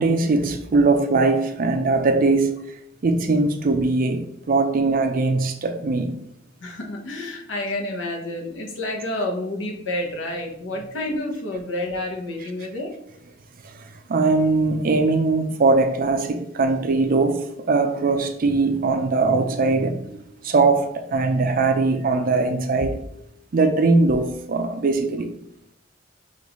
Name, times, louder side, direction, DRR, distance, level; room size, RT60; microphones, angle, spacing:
voice 1, 0.0-2.6 3.0-6.1 12.4-12.5 13.6-20.2 20.4-23.0 23.5-25.3, right 3 dB, 45° right, 0.4 m, -21 dB
voice 2, 6.6-12.9, left 1 dB, 70° left, 0.9 m, -29 dB
5.3 x 2.5 x 3.0 m
head